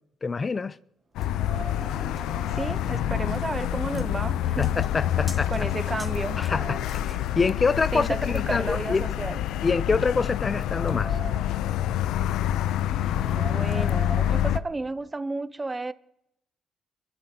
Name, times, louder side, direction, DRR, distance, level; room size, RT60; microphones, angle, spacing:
voice 1, 0.2-0.8 4.6-5.5 6.4-8.1 8.3-9.1 9.6-11.1, left 4 dB, 30° left, 0.4 m, -26 dB
sound 1, 1.1-14.6, left 11 dB, 90° left, 0.4 m, -27 dB
sound 2, 1.2-7.5, equal, 5° left, 2.0 m, -48 dB
Wind, 1.2-3.8 4.2-4.3 5.0-5.1 5.5-7.2 8.0-9.5 10.1-11.7 13.0-15.1, right 4 dB, 45° right, 1.6 m, -43 dB
voice 2, 2.5-4.8 5.5-6.5 7.9-9.4 13.0-15.9, right 3 dB, 20° right, 0.7 m, -32 dB
24.0 x 12.0 x 2.8 m
cardioid pair, 90°, 0 cm